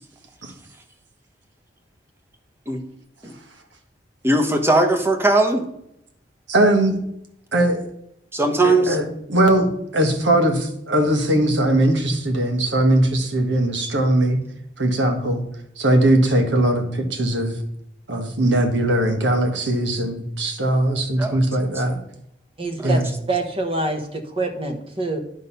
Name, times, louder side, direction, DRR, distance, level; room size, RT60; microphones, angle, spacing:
voice 1, 4.2-5.6 8.3-9.0 21.2-21.4 22.8-22.9, right 2 dB, 15° right, 4 dB, 1.2 m, -19 dB
voice 2, 6.5-7.0 7.5-7.8 8.6-9.0 9.3-14.4 14.8-15.4 15.8-17.5 18.1-22.0 22.8-23.1, right 1 dB, 80° right, 4 dB, 1.7 m, -20 dB
voice 3, 22.6-23.0 23.3-25.2, right 2 dB, 30° right, 5 dB, 1.3 m, -25 dB
10.5 x 5.4 x 5.6 m, 0.77 s
head